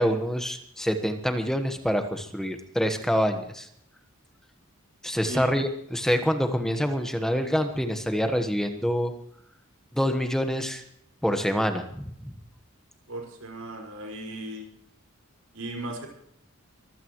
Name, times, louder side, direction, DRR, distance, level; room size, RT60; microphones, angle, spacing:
voice 1, 0.0-3.7 5.0-9.1 9.9-10.8 11.2-12.3, equal, ahead, 6 dB, 1.3 m, -26 dB
voice 2, 13.1-14.6 15.5-16.1, right 1 dB, 90° right, 2 dB, 5.6 m, -36 dB
24.0 x 15.5 x 3.1 m, 0.70 s
head